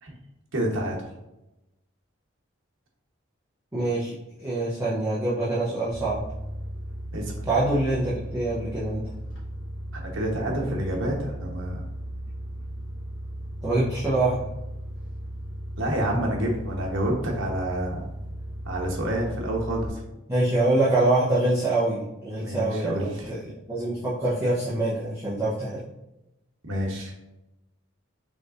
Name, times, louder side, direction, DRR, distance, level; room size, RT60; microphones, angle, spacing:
voice 1, 0.5-1.1 7.1-7.5 9.9-11.8 15.8-18.0 18.6-20.0 22.4-23.4 26.6-27.1, right 1 dB, 75° right, -1 dB, 1.0 m, -28 dB
voice 2, 3.7-4.1 4.4-6.2 7.5-9.0 13.6-14.5 20.3-23.4 23.7-25.8, right 2 dB, 15° right, -10 dB, 0.9 m, -25 dB
sound 1, 5.9-19.9, equal, 60° left, 1.2 m, -36 dB
5.2 x 3.2 x 2.5 m, 0.93 s
head